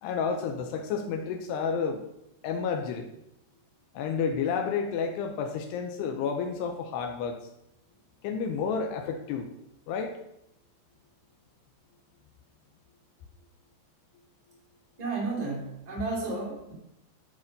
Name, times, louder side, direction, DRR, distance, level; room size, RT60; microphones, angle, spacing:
voice 1, 0.0-2.0 2.4-3.1 3.9-7.5 8.2-9.5 9.9-10.2, left 6 dB, 80° left, 6 dB, 2.4 m, -30 dB
voice 2, 15.0-16.7, right 3 dB, 60° right, -2 dB, 0.4 m, -32 dB
11.0 x 5.2 x 5.3 m, 0.81 s
omnidirectional pair, 5.5 m